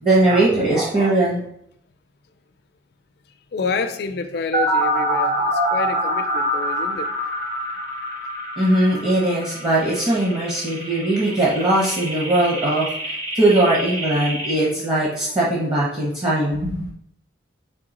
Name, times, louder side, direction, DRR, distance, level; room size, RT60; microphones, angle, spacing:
voice 1, 0.0-1.4 8.6-12.9 13.3-16.8, right 1 dB, 30° right, -6 dB, 0.8 m, -20 dB
voice 2, 3.5-7.1, left 4 dB, 55° left, 8 dB, 0.4 m, -28 dB
sound 1, 4.5-14.5, equal, 70° right, 1.5 m, -25 dB
3.7 x 3.1 x 4.1 m, 0.72 s
head